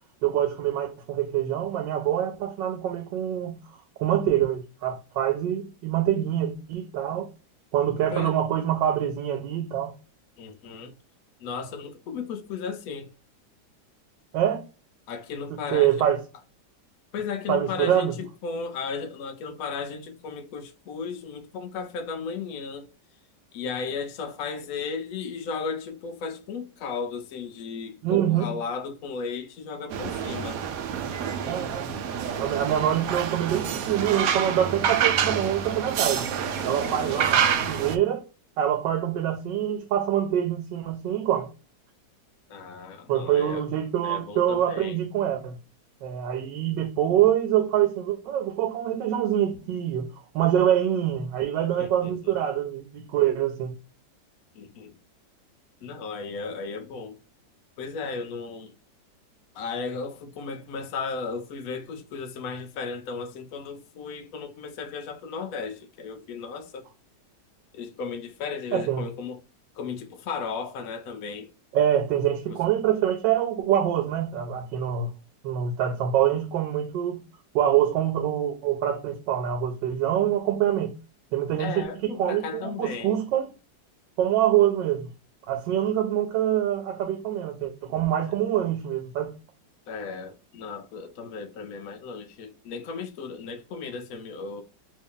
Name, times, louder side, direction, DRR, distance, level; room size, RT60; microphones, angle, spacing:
voice 1, 0.2-3.6 4.0-7.3 7.7-9.9 14.3-14.6 15.7-16.2 17.5-18.1 28.0-28.5 31.5-31.9 32.4-36.2 36.7-37.4 37.7-38.2 38.6-41.5 43.1-45.6 46.0-50.1 50.3-53.7 68.7-69.0 71.7-75.1 75.4-77.2 77.5-80.9 81.3-83.5 84.2-85.1 85.5-89.3, right 10 dB, 90° right, 1.3 m, -25 dB
voice 2, 10.4-11.0 11.4-13.1 15.1-16.1 17.1-22.9 23.5-30.6 32.6-32.9 36.8-37.3 42.5-43.7 44.0-45.0 51.8-52.3 54.5-55.0 55.8-57.2 57.8-58.7 59.5-66.9 67.7-69.4 69.7-71.5 72.5-72.6 81.6-83.2 89.9-94.6, left 5 dB, 70° left, 0.8 m, -35 dB
sound 1, 29.9-38.0, right 8 dB, 70° right, 0.8 m, -27 dB
3.0 x 2.7 x 3.6 m
omnidirectional pair, 1.9 m